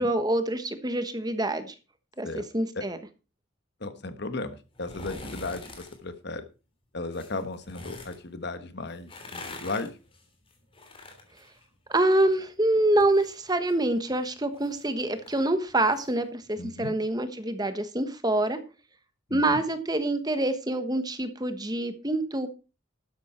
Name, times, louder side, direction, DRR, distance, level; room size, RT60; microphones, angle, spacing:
voice 1, 0.0-1.7 2.2-2.3 2.5-3.0 11.9-18.6 19.3-22.5, right 1 dB, 20° right, 10 dB, 1.2 m, -26 dB
voice 2, 3.8-6.5 6.9-10.0 16.6-16.9 19.3-19.6, left 2 dB, 55° left, 10 dB, 1.4 m, -35 dB
sound 1, 4.7-6.0 7.1-8.2 8.9-12.4 12.7-16.1 16.5-16.6, left 2 dB, 25° left, 3.2 m, -45 dB
12.5 x 10.5 x 4.4 m, 0.32 s
head